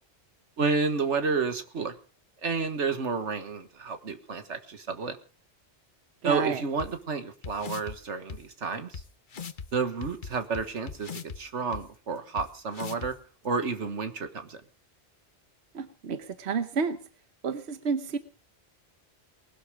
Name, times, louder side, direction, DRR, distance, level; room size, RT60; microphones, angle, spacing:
voice 1, 0.6-1.9 2.4-5.2 6.2-9.0 9.7-13.1 13.4-14.6, right 4 dB, 90° right, 8 dB, 1.8 m, -30 dB
voice 2, 6.2-6.6 15.7-17.0 17.4-18.2, right 5 dB, 70° right, 9 dB, 1.2 m, -30 dB
sound 1, 6.8-6.9 7.4-8.0 8.3-8.4 8.9-9.0 9.3-9.7 10.0-11.4 11.7-11.8 12.4-12.5 12.7-13.1, left 6 dB, 50° left, 1.1 m, -38 dB
20.0 x 12.0 x 5.0 m, 0.40 s
omnidirectional pair, 1.2 m